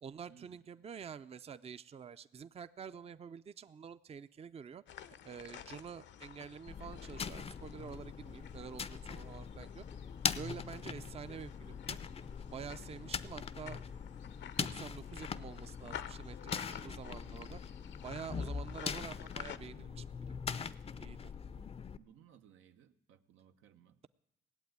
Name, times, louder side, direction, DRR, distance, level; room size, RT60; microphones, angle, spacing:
voice 1, 0.0-4.8 5.2-9.8 10.3-12.0 12.5-13.8 14.6-17.6 18.0-20.7 21.0-21.3, right 7 dB, 30° right, 13 dB, 0.5 m, -48 dB
sound 1, 4.9-19.6, left 9 dB, 65° left, 0.7 m, -51 dB
sound 2, 6.7-22.0, left 6 dB, 30° left, 0.5 m, -42 dB
voice 2, 21.5-24.0, right 9 dB, 90° right, 7 dB, 0.9 m, -62 dB
17.5 x 8.0 x 9.3 m, 0.85 s
cardioid pair, 90°, 20 cm